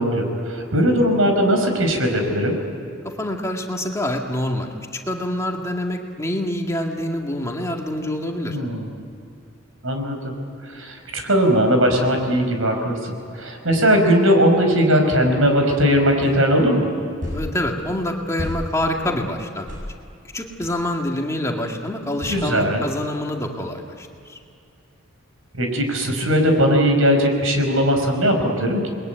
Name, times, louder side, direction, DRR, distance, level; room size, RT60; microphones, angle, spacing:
voice 1, 0.0-2.6 8.4-8.9 9.8-10.3 10.7-16.9 22.3-22.9 25.6-28.9, equal, 80° right, 4 dB, 5.2 m, -19 dB
voice 2, 3.2-4.7 5.1-8.6 17.3-19.7 20.3-24.4, left 1 dB, 15° left, 1 dB, 2.1 m, -26 dB
sound 1, 16.2-16.3 17.2-17.5 18.4-18.6 19.7-19.9 20.6-20.8 22.2-22.4, left 1 dB, 40° right, 7.9 m, -30 dB
29.5 x 21.5 x 9.2 m, 2.5 s
head